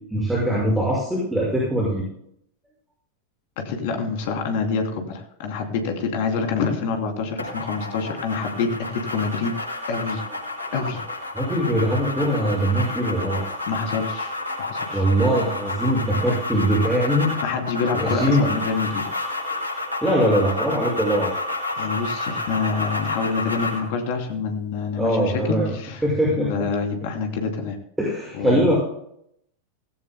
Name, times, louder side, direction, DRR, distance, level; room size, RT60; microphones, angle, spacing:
voice 1, 0.1-2.0 11.3-13.5 14.9-17.3 17.9-18.5 20.0-21.3 25.0-25.7 26.0-26.5 28.0-28.8, equal, 5° right, -5 dB, 6.1 m, -21 dB
voice 2, 3.6-9.5 9.9-10.2 10.7-11.0 13.7-15.0 17.4-19.1 21.8-26.0 26.4-27.8 28.4-28.7, left 5 dB, 50° left, 4 dB, 3.1 m, -26 dB
sound 1, 7.4-23.9, left 2 dB, 90° right, 5.0 m, -30 dB
18.5 x 16.5 x 2.2 m, 0.72 s
figure-of-eight pair, 90°, 0 cm